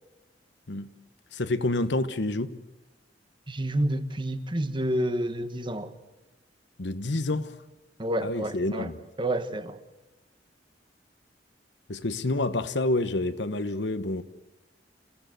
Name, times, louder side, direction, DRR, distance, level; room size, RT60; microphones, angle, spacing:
voice 1, 1.3-2.6 6.8-7.5 8.2-8.9 11.9-14.2, left 2 dB, 75° left, 1.1 m, -28 dB
voice 2, 3.5-5.9 8.0-8.9 9.2-9.8, right 1 dB, 25° right, 1.3 m, -29 dB
28.0 x 16.0 x 7.9 m
head